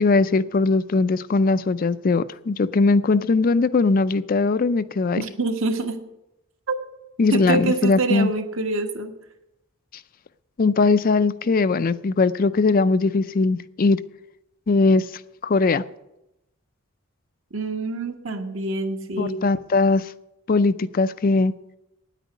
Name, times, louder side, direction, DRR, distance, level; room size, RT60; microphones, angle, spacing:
voice 1, 0.0-5.2 7.2-8.3 10.6-14.0 14.7-15.1 15.4-15.8 19.2-20.1 20.5-21.5, left 3 dB, 40° left, 0.4 m, -20 dB
voice 2, 5.2-6.1 6.7-6.8 7.3-9.1 17.5-19.4, right 3 dB, 65° right, 1.5 m, -26 dB
9.7 x 9.1 x 9.2 m
head